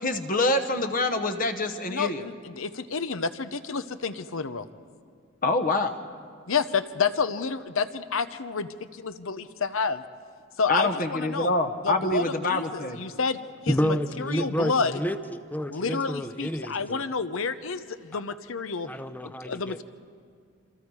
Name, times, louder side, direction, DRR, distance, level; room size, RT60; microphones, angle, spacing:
voice 1, 0.0-2.3 5.4-5.9 10.7-13.0, left 2 dB, 40° left, 7 dB, 1.0 m, -26 dB
voice 2, 1.9-4.7 6.5-10.0 10.6-11.5 11.8-13.4 13.6-14.9 15.7-18.9 19.2-19.8, left 5 dB, 65° left, 12 dB, 0.8 m, -29 dB
voice 3, 13.7-17.0 18.1-18.2 18.9-19.8, equal, 10° left, 11 dB, 0.6 m, -29 dB
27.0 x 25.5 x 4.8 m, 2.2 s
head